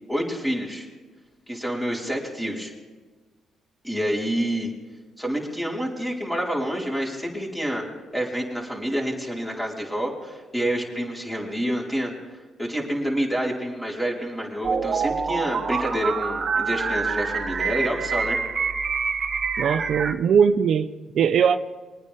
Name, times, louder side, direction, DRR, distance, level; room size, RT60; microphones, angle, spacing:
voice 1, 0.1-0.9 1.5-2.7 3.8-4.7 5.2-7.9 8.1-18.4, equal, 5° left, -3 dB, 4.8 m, -28 dB
sound 1, 14.6-20.1, right 5 dB, 50° right, 1.3 m, -26 dB
voice 2, 19.6-21.6, right 7 dB, 65° right, 8 dB, 0.8 m, -20 dB
24.0 x 9.5 x 3.7 m, 1.3 s
cardioid pair, 90°, 0 cm